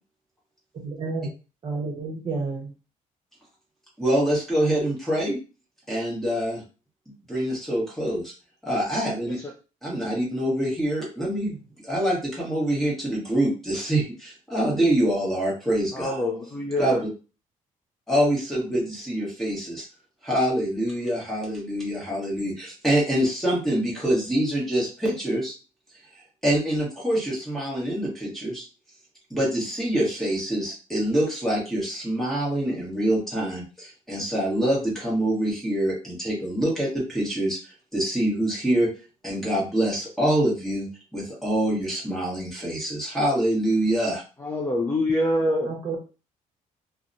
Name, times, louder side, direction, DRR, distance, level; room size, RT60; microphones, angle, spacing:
voice 1, 0.8-1.3 1.6-2.7 45.6-46.0, right 4 dB, 40° right, 1 dB, 0.9 m, -30 dB
voice 2, 4.0-5.4 5.9-6.6 7.3-8.3 8.6-9.4 9.8-11.6 11.8-16.2 16.8-17.1 18.1-19.8 20.2-25.5 26.4-28.6 29.3-37.6 37.9-38.9 39.2-44.2, right 1 dB, ahead, -4 dB, 1.1 m, -25 dB
voice 3, 15.9-17.0 44.4-45.7, left 1 dB, 15° left, -1 dB, 0.4 m, -25 dB
2.9 x 2.0 x 2.5 m, 0.33 s
cardioid pair, 140°, 14 cm